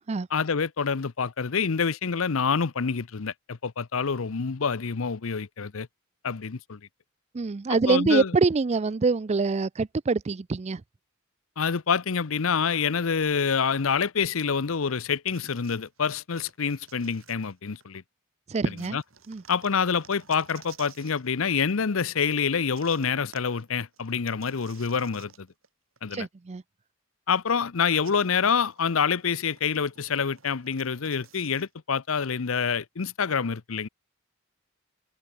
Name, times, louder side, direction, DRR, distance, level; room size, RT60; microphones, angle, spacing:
voice 1, 0.3-5.9 6.2-6.8 7.9-8.3 11.6-18.0 18.9-19.0 19.5-25.5 26.0-26.3 27.3-33.9, left 6 dB, 75° left, 0.7 m, -27 dB
voice 2, 7.3-10.8 18.5-19.0 19.3-19.4 26.1-26.6, right 4 dB, 30° right, 0.4 m, -25 dB
sound 1, 15.3-18.0 18.8-21.3 22.7-25.7 26.0-26.1 27.9-31.7, right 7 dB, 70° right, 5.2 m, -53 dB
head